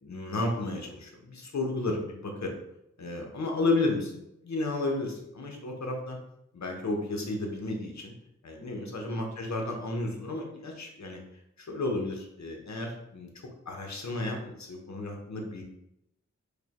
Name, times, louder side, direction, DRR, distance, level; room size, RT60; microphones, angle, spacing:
voice 1, 0.0-2.5 3.0-6.2 6.5-8.1 8.4-11.2 11.6-13.3 13.7-15.6, left 2 dB, 65° left, 1 dB, 0.8 m, -32 dB
5.0 x 2.1 x 2.9 m, 0.82 s
wide cardioid pair, 65°, 30 cm